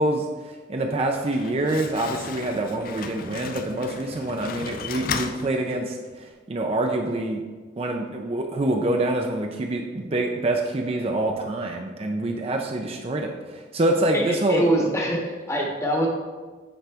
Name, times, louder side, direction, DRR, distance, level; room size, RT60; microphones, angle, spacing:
voice 1, 0.0-7.4 7.8-14.9, right 1 dB, 30° right, 2 dB, 0.4 m, -26 dB
Slam, 1.0-6.1, left 6 dB, 45° left, 0.4 m, -35 dB
voice 2, 14.1-16.1, right 1 dB, 15° left, 0 dB, 1.0 m, -24 dB
10.0 x 3.9 x 3.4 m, 1.4 s
head